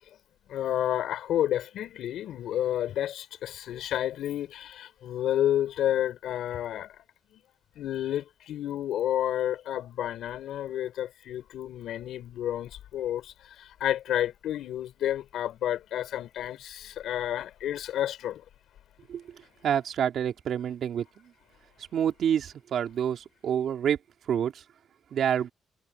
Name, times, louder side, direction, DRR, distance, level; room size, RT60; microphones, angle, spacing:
voice 1, 0.5-7.0 7.3-7.4 7.8-18.4, left 11 dB, 80° left, 5.3 m, -30 dB
voice 2, 19.6-21.1 21.9-24.0 24.3-24.5 25.1-25.5, right 9 dB, 65° right, 3.7 m, -27 dB
cardioid pair, 90°, 0 cm